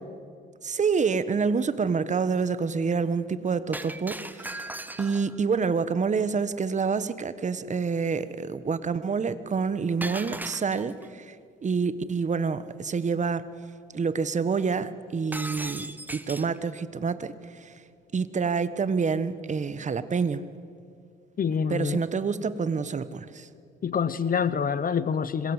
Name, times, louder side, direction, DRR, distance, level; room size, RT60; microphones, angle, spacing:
voice 1, 0.6-4.7 5.0-11.4 11.6-13.5 13.9-15.8 16.1-17.7 18.1-20.4 21.7-23.5, right 5 dB, 35° right, 14 dB, 1.3 m, -27 dB
Shatter, 3.7-5.4 10.0-11.1 15.3-16.6, right 1 dB, 10° right, 1.2 m, -37 dB
voice 2, 21.4-22.1 23.8-25.5, left 6 dB, 45° left, 15 dB, 1.0 m, -26 dB
26.0 x 22.0 x 8.2 m, 2.3 s
cardioid pair, 90°, 20 cm